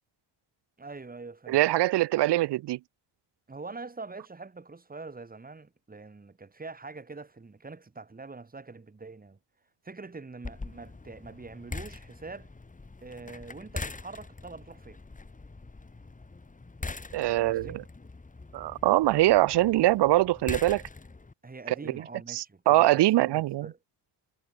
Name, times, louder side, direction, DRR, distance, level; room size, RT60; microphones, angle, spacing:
voice 1, 0.8-1.6 3.5-9.4 9.8-12.5 13.0-15.0 17.3-17.8 19.5-19.8 21.4-23.8, right 3 dB, 20° right, 3.7 m, -44 dB
voice 2, 1.5-2.8 17.1-17.8 18.5-20.8 21.7-21.9 22.3-23.7, right 16 dB, 70° right, 0.6 m, -23 dB
sound 1, 10.4-21.3, left 3 dB, 20° left, 3.4 m, -42 dB
wide cardioid pair, 155°, 43 cm